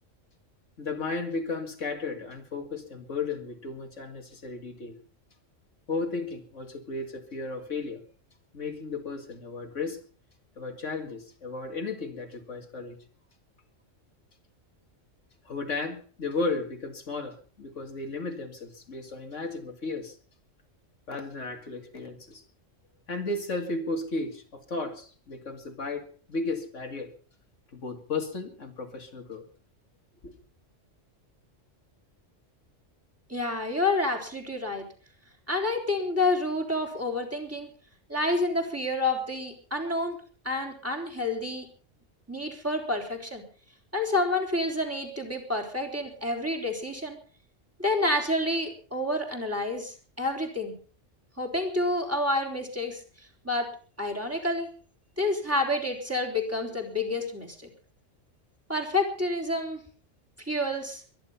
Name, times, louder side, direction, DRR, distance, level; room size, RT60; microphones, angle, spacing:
voice 1, 0.8-5.0 5.9-8.0 8.5-10.0 10.6-13.0 15.4-20.2 21.1-22.4 23.1-27.1 27.7-29.4 30.2-30.3, left 3 dB, 70° left, 5 dB, 2.4 m, -34 dB
voice 2, 33.3-34.8 35.5-37.7 38.1-40.2 40.4-41.7 42.3-43.4 43.9-47.2 47.8-50.8 51.4-53.7 54.0-54.7 55.2-57.6 58.7-59.8 60.4-61.0, left 2 dB, 10° right, 1 dB, 3.9 m, -29 dB
23.0 x 10.5 x 5.6 m, 0.42 s
omnidirectional pair, 1.3 m